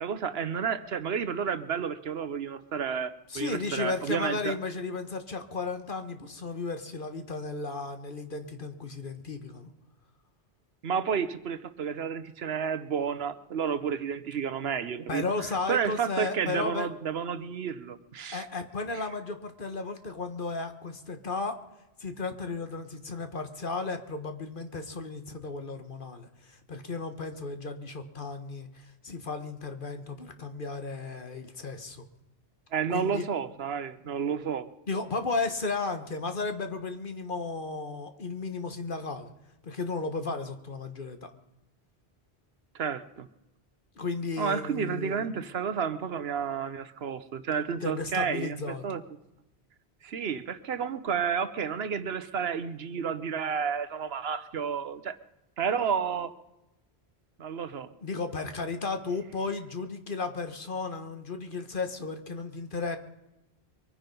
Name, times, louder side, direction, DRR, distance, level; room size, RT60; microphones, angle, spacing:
voice 1, 0.0-4.5 10.8-15.2 15.7-18.5 18.9-19.0 32.7-34.7 42.7-43.3 44.4-48.6 48.8-49.0 50.0-55.1 55.6-56.3 57.4-57.9, right 7 dB, 70° right, 13 dB, 1.1 m, -31 dB
voice 2, 3.3-9.7 15.1-16.9 18.3-21.6 22.0-32.0 32.9-33.2 34.9-39.3 39.6-41.3 43.9-45.3 47.8-48.9 58.0-63.0, left 3 dB, 50° left, 7 dB, 1.5 m, -34 dB
23.5 x 10.0 x 5.3 m, 0.93 s
omnidirectional pair, 1.1 m